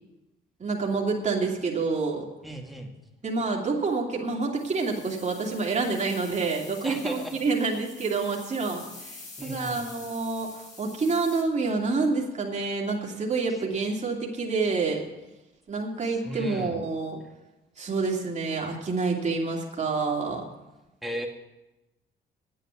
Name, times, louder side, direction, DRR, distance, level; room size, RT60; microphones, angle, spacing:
voice 1, 0.6-2.3 3.2-15.0 15.7-17.2 17.8-20.4, right 4 dB, 35° right, -1 dB, 2.8 m, -28 dB
voice 2, 2.4-3.0 6.8-7.4 9.4-9.8 16.2-16.8 21.0-21.3, right 1 dB, ahead, 1 dB, 2.2 m, -35 dB
sound 1, 4.5-11.4, left 3 dB, 40° left, 3.8 m, -47 dB
9.3 x 9.3 x 8.4 m, 0.99 s
cardioid pair, 90°, 20 cm